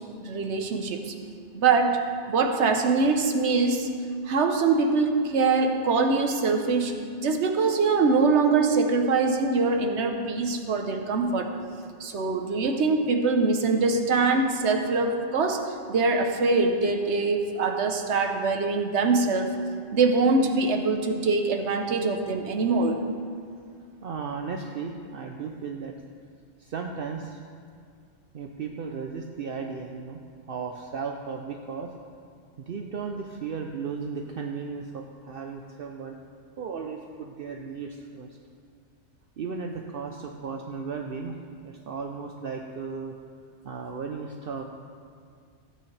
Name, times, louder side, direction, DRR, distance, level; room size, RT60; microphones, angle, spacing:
voice 1, 0.2-1.1 1.5-2.0 2.3-3.9 4.2-11.5 12.0-19.6 19.9-23.0, right 4 dB, 90° right, 5 dB, 1.2 m, -23 dB
voice 2, 24.0-25.9 26.6-27.4 28.3-30.2 30.5-31.9 32.6-36.2 36.6-38.4 39.4-43.1 43.6-44.6, right 5 dB, 60° right, 2 dB, 0.8 m, -35 dB
16.5 x 8.8 x 3.3 m, 2.3 s
omnidirectional pair, 1.1 m